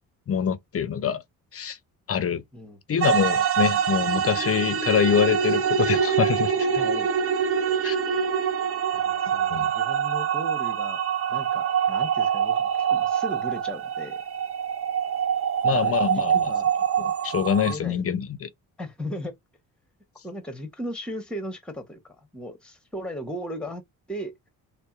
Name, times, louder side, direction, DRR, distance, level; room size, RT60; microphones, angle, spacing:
voice 1, 0.3-1.2 1.5-1.8 2.1-2.4 2.9-6.7 7.8-8.0 9.5-9.7 15.6-16.5 17.0-18.5, left 8 dB, 35° left, 0.5 m, -25 dB
sound 1, 3.0-17.7, right 8 dB, 35° right, 0.5 m, -25 dB
voice 2, 6.7-7.1 8.9-11.0 11.3-14.2 15.7-16.7 17.6-18.0 18.8-19.3 20.2-23.8 24.1-24.3, equal, ahead, 0.9 m, -37 dB
2.7 x 2.1 x 2.3 m
supercardioid pair, 55°, 42 cm